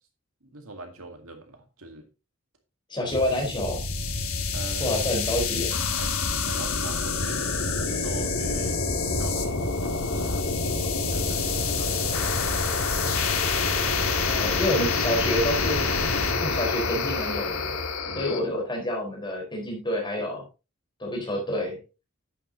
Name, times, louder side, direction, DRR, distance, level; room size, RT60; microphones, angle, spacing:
voice 1, 0.4-2.1 3.0-3.4 4.5-5.1 6.0-7.4 7.9-8.8 9.1-12.9 18.1-18.4, right 2 dB, 80° right, 2.1 m, -42 dB
voice 2, 2.9-3.8 4.8-5.8 14.2-15.8 16.4-17.7 18.2-20.4 21.0-21.8, left 1 dB, 20° left, 4.0 m, -28 dB
sound 1, 3.1-18.4, left 4 dB, 85° left, 1.9 m, -27 dB
10.5 x 9.4 x 2.7 m
head